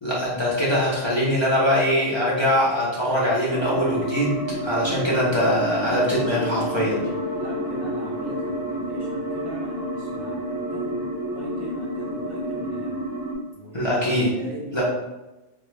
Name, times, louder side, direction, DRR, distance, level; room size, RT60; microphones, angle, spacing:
voice 1, 0.0-4.4 4.6-7.0 13.7-14.3 14.7-14.8, equal, 30° left, -7 dB, 0.6 m, -22 dB
sound 1, 3.5-13.4, right 1 dB, 25° right, 0.5 m, -30 dB
sound 2, 5.4-13.1, left 5 dB, 70° left, 0.9 m, -36 dB
voice 2, 6.8-11.1 11.3-13.1 13.5-14.8, right 1 dB, 50° right, -5 dB, 1.0 m, -40 dB
3.6 x 2.1 x 3.2 m, 1.0 s
omnidirectional pair, 1.3 m